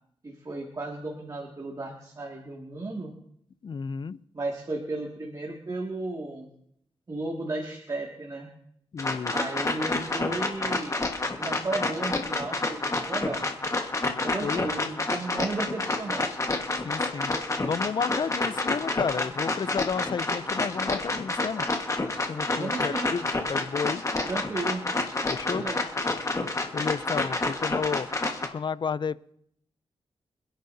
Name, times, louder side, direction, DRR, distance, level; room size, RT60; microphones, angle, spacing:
voice 1, 0.2-3.1 4.3-6.5 7.1-8.5 9.3-11.0 11.4-13.5 14.2-16.3 22.6-23.1 24.2-24.8 25.5-25.8 27.1-27.2, right 2 dB, 35° right, -1 dB, 2.2 m, -34 dB
voice 2, 3.6-4.2 8.9-9.3 14.4-14.7 16.8-17.3 17.6-21.7 22.3-24.0 25.3-25.6 26.7-28.1 28.5-29.2, left 6 dB, 50° left, 18 dB, 0.5 m, -31 dB
sound 1, 9.0-28.5, left 2 dB, 30° left, 1.5 m, -29 dB
29.0 x 10.5 x 2.8 m, 0.71 s
cardioid pair, 75°, 10 cm